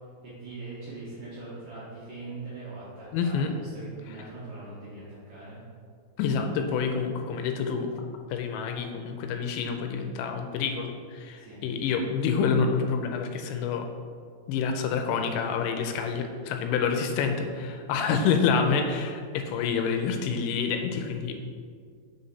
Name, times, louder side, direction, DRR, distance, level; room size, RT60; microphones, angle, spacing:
voice 1, 0.2-5.6 11.4-11.7 17.9-18.4 18.6-18.8, right 2 dB, 70° right, -9 dB, 2.0 m, -41 dB
voice 2, 3.1-3.5 6.2-7.9 8.3-13.9 14.5-21.4, left 6 dB, 85° left, 5 dB, 2.8 m, -27 dB
6.5 x 5.7 x 4.0 m, 2.1 s
omnidirectional pair, 5.3 m